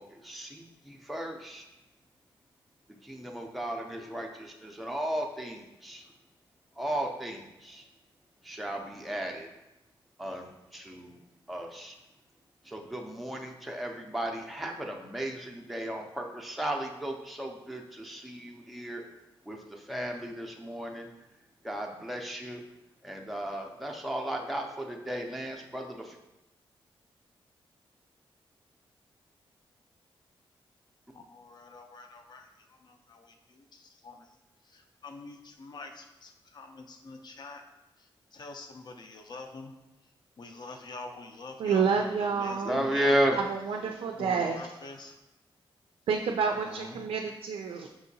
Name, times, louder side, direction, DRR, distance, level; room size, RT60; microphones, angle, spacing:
voice 1, 0.0-1.6 3.0-6.0 6.8-7.9 8.4-9.5 10.2-11.2 11.5-12.0 12.6-19.0 19.5-21.1 21.6-22.6 23.0-26.2 42.6-43.4, right 1 dB, ahead, 1 dB, 0.5 m, -34 dB
voice 2, 31.1-32.5 32.8-34.3 34.7-37.6 38.3-39.7 40.4-43.2 44.2-45.1 46.6-47.1, left 3 dB, 50° left, 5 dB, 0.5 m, -45 dB
voice 3, 41.6-42.9 43.5-44.7 46.1-47.9, right 6 dB, 75° right, 3 dB, 0.4 m, -29 dB
5.8 x 2.7 x 2.7 m, 0.93 s
cardioid pair, 95°, 9 cm